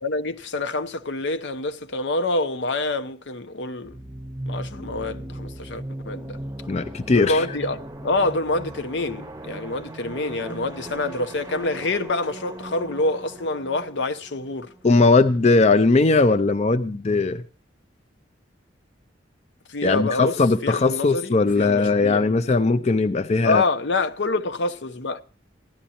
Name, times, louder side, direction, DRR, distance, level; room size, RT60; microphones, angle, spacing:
voice 1, 0.0-3.9 4.5-6.4 7.1-14.7 19.7-20.4 20.6-22.3 23.4-25.2, left 2 dB, 70° left, 0.8 m, -26 dB
sound 1, 3.8-15.4, right 1 dB, 20° right, 0.8 m, -38 dB
voice 2, 6.7-7.5 14.8-17.4 19.8-23.6, left 3 dB, 35° left, 0.5 m, -19 dB
16.0 x 11.5 x 2.9 m
head